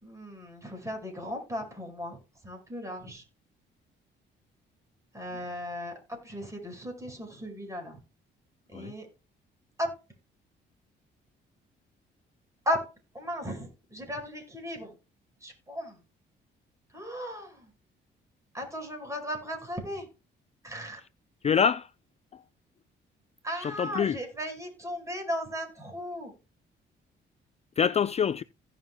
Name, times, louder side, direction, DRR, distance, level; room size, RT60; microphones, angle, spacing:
voice 1, 0.0-2.2 2.4-3.2 5.1-5.9 6.2-8.0 8.7-9.1 9.8-9.9 12.6-12.8 13.1-14.9 15.4-15.9 16.9-17.6 18.5-20.0 20.6-21.0 23.4-26.3, equal, 15° right, 5.1 m, -36 dB
voice 2, 21.4-21.9 22.3-22.4 23.6-24.2 27.8-28.4, left 7 dB, 35° left, 0.4 m, -26 dB
16.5 x 6.2 x 2.2 m
cardioid pair, 90°, 20 cm